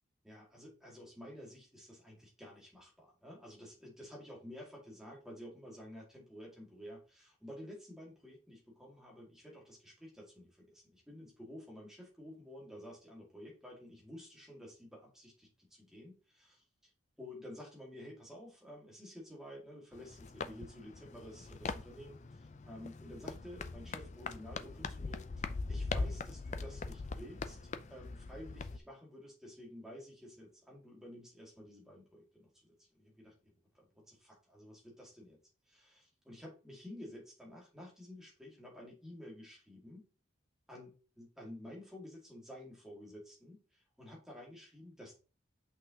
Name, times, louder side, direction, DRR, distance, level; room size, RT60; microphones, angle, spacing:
voice 1, 0.2-16.9 17.2-33.3 33.7-35.4 35.7-40.1 40.7-45.2, left 1 dB, 5° right, -3 dB, 2.0 m, -51 dB
sound 1, 19.9-28.8, left 3 dB, 35° left, 0.4 m, -41 dB
6.3 x 5.6 x 2.9 m, 0.34 s
head